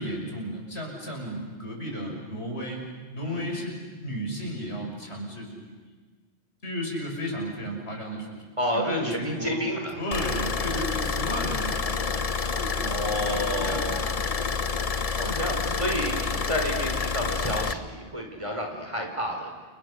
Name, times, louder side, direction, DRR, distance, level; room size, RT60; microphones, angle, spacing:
voice 1, 0.0-2.8 3.1-5.9 6.6-9.6 10.0-12.3 12.6-14.2 15.3-15.4, equal, 75° left, 0 dB, 6.5 m, -34 dB
voice 2, 8.6-10.0 12.9-14.2 15.1-19.5, equal, 30° right, 2 dB, 4.7 m, -30 dB
sound 1, 10.1-17.7, left 5 dB, 35° left, 0.9 m, -28 dB
29.5 x 29.5 x 6.6 m, 1.4 s
omnidirectional pair, 1.1 m